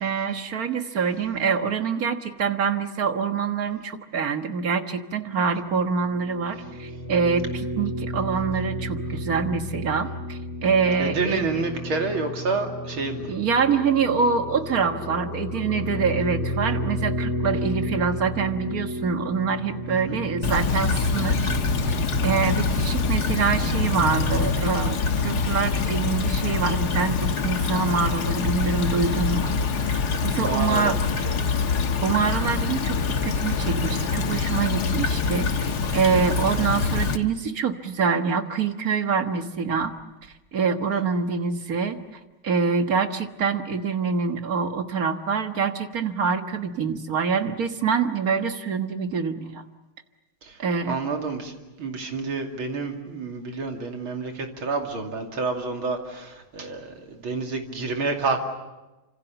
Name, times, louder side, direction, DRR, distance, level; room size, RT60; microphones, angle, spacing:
voice 1, 0.0-11.5 13.3-21.5 21.9-22.0 22.2-29.5 29.9-31.0 32.0-39.9 40.5-42.0 42.4-49.6 50.6-51.0, right 5 dB, 45° right, 7 dB, 1.7 m, -25 dB
sound 1, 5.8-24.6, left 1 dB, 25° left, 3.2 m, -32 dB
voice 2, 11.0-13.3 19.9-20.2 30.3-31.0 31.3-31.4 50.4-50.5 50.9-51.5 51.8-58.5, right 3 dB, 75° right, 3 dB, 3.5 m, -29 dB
Stream / Trickle dribble, 20.4-37.2, left 4 dB, 55° left, 1.7 m, -25 dB
28.5 x 26.5 x 7.0 m, 1.1 s
omnidirectional pair, 2.3 m